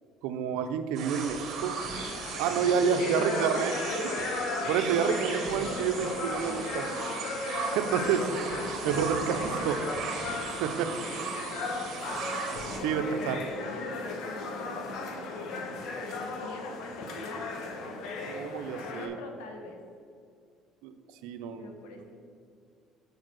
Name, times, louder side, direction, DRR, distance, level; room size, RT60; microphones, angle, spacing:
voice 1, 0.2-1.7 2.4-3.7 4.7-6.9 7.5-8.4 8.7-9.8 10.6-10.9 12.3-12.4 12.8-13.4 18.3-19.2 20.8-20.9 21.2-21.8, right 7 dB, 80° right, 9 dB, 0.6 m, -29 dB
sound 1, 0.9-12.8, right 5 dB, 50° right, 1.5 m, -37 dB
sound 2, 1.9-19.1, left 3 dB, 65° left, 1.1 m, -36 dB
voice 2, 2.4-4.2 5.1-5.4 13.0-18.1 18.8-19.8 21.6-22.2, left 3 dB, 90° left, 4 dB, 1.2 m, -43 dB
6.6 x 4.6 x 6.2 m, 2.3 s
supercardioid pair, 100°, 0 cm